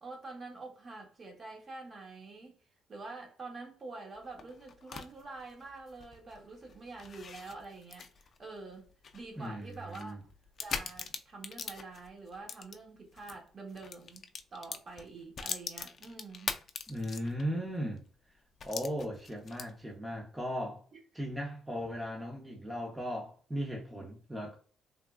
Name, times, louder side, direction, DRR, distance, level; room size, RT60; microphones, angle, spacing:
voice 1, 0.0-2.6 2.9-10.2 10.6-16.5 20.9-21.0, right 3 dB, 40° right, 1.0 m, -47 dB
sound 1, 4.2-13.4 13.7-17.6 18.0-18.1 18.6-19.9, left 5 dB, 50° left, 0.3 m, -43 dB
voice 2, 9.4-10.2 16.9-18.1 18.6-20.8 21.1-24.6, equal, 10° right, 0.6 m, -37 dB
3.4 x 2.2 x 2.3 m
cardioid pair, 90°, 0 cm